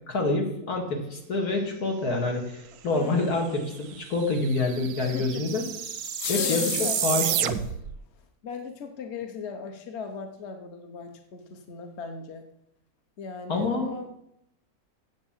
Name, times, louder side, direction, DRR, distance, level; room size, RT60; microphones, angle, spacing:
voice 1, 0.1-5.6 6.3-7.5 13.5-13.9, left 3 dB, 85° left, 1 dB, 2.5 m, -27 dB
voice 2, 2.7-3.4 5.0-5.5 6.3-7.4 8.2-12.5 13.2-14.1, left 5 dB, 50° left, 6 dB, 1.2 m, -38 dB
sound 1, 3.5-3.6 3.7-8.0, right 10 dB, 90° right, 1.2 m, -31 dB
sound 2, 5.5-7.7, left 11 dB, 70° left, 0.6 m, -34 dB
8.1 x 7.9 x 7.3 m, 0.77 s
omnidirectional pair, 1.6 m